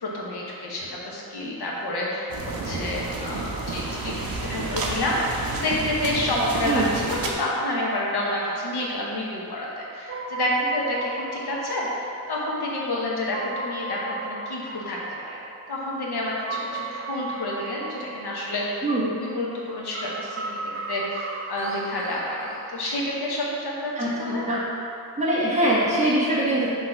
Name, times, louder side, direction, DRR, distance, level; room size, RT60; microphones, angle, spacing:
voice 1, 0.0-2.3 2.6-15.4 15.7-18.8 19.1-24.5, left 1 dB, 90° left, -4 dB, 1.2 m, -29 dB
sound 1, 2.3-7.3, right 3 dB, 65° right, 0.8 m, -30 dB
Spooky Ambient, 10.1-23.1, right 3 dB, 35° right, 0.4 m, -36 dB
voice 2, 18.8-19.2 23.9-24.6 25.2-26.7, right 1 dB, 20° right, -9 dB, 1.3 m, -23 dB
5.9 x 3.2 x 5.7 m, 2.6 s
wide cardioid pair, 145°, 38 cm